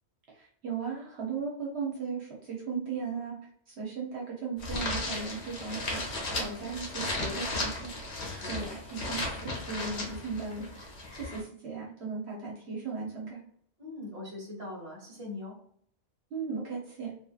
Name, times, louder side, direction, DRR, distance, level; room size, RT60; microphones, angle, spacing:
voice 1, 0.4-3.4 3.7-7.9 8.4-13.4 16.3-17.1, right 5 dB, 70° right, -3 dB, 1.0 m, -37 dB
sound 1, 4.6-11.4, left 2 dB, 80° left, 1.2 m, -35 dB
voice 2, 6.3-6.6 8.3-8.7 13.8-15.6, left 2 dB, 30° right, -4 dB, 1.3 m, -42 dB
2.7 x 2.7 x 2.3 m, 0.63 s
omnidirectional pair, 1.1 m